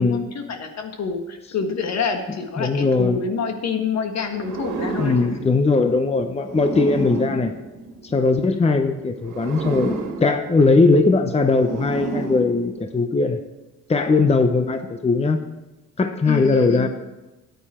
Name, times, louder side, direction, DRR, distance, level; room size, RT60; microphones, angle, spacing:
voice 1, 0.0-5.2 16.3-16.9, left 5 dB, 60° left, 5 dB, 1.7 m, -27 dB
voice 2, 2.6-3.2 5.0-7.5 8.0-13.4 13.9-15.4 16.0-16.9, left 3 dB, 20° left, 7 dB, 0.8 m, -19 dB
sound 1, 4.3-8.5 9.2-13.1, right 3 dB, 85° right, 1.7 m, -31 dB
13.5 x 9.3 x 4.4 m, 1.1 s
cardioid pair, 90°, 30 cm